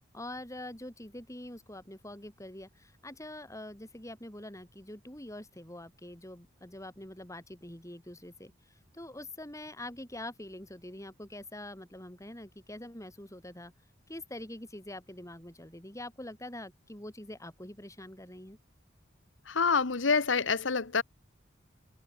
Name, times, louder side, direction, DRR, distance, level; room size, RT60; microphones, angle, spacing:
voice 1, 0.1-8.5 8.9-13.7 14.1-18.6, left 1 dB, 15° left, 4.3 m, -45 dB
voice 2, 19.5-21.0, left 5 dB, 70° left, 1.1 m, -27 dB
head